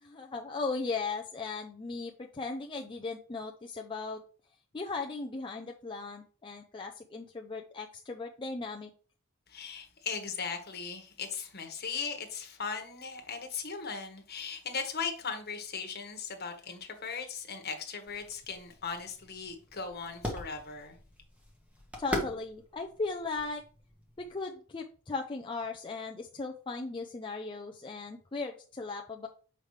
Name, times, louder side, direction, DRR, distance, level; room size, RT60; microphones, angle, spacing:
voice 1, 0.0-4.2 4.7-8.9 22.0-23.6 24.2-29.3, left 3 dB, 20° left, 0.5 m, -37 dB
voice 2, 9.5-21.0, left 5 dB, 45° left, 1.4 m, -38 dB
sound 1, 18.1-24.4, equal, 5° right, 1.5 m, -41 dB
7.1 x 5.0 x 3.2 m
head